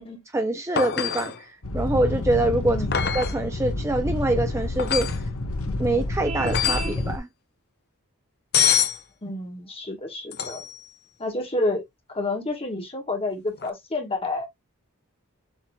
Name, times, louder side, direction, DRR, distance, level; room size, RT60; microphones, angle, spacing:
voice 1, 0.3-2.8 3.1-5.1 5.8-7.3, right 2 dB, 15° right, 0.5 m, -25 dB
sound 1, 0.8-1.4 2.9-3.4 4.8-5.2 6.5-7.0 8.5-9.0 10.3-10.8 13.6-13.7, left 8 dB, 45° left, 0.7 m, -24 dB
sound 2, 1.6-7.2, left 2 dB, 80° left, 1.0 m, -29 dB
voice 2, 2.7-3.0 9.2-10.6 11.2-11.8 12.1-14.5, left 2 dB, 25° left, 1.4 m, -29 dB
Vehicle horn car horn honking, 6.2-7.0, right 4 dB, 45° right, 1.6 m, -33 dB
7.4 x 2.9 x 2.2 m
head